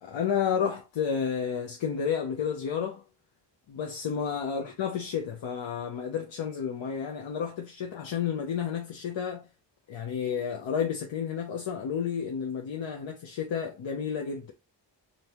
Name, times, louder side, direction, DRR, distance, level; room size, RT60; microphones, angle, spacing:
voice 1, 0.0-3.0 3.7-9.5 9.9-14.5, left 7 dB, 90° left, 0.8 m, -31 dB
5.1 x 2.8 x 2.9 m
wide cardioid pair, 115°, 44 cm